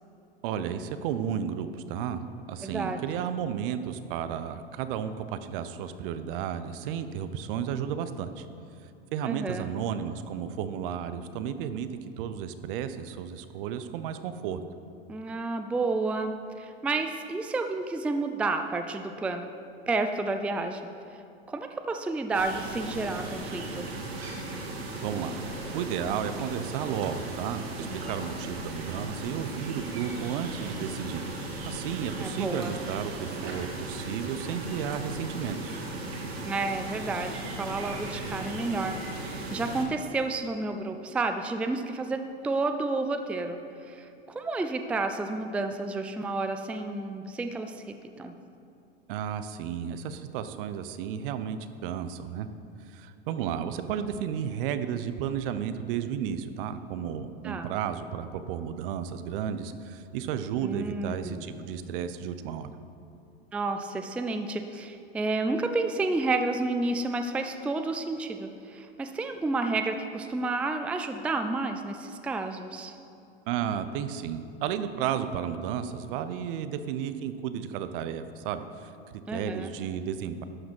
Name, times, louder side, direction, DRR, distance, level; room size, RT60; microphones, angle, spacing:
voice 1, 0.4-2.2 2.5-8.5 9.1-11.9 12.2-14.6 25.0-25.4 25.7-31.3 31.6-35.8 49.1-52.5 52.9-62.7 73.5-80.4, right 8 dB, 60° right, 11 dB, 0.7 m, -33 dB
voice 2, 2.6-3.0 9.3-9.7 15.1-19.5 19.9-20.9 21.5-23.9 32.2-32.7 36.4-39.0 39.3-48.4 57.4-57.7 60.6-61.8 63.5-72.9 79.3-79.7, right 3 dB, 5° right, 7 dB, 0.4 m, -31 dB
sound 1, 22.3-39.8, right 2 dB, 80° right, 2.0 m, -37 dB
12.0 x 5.1 x 6.2 m, 2.6 s
hypercardioid pair, 100°, 31 cm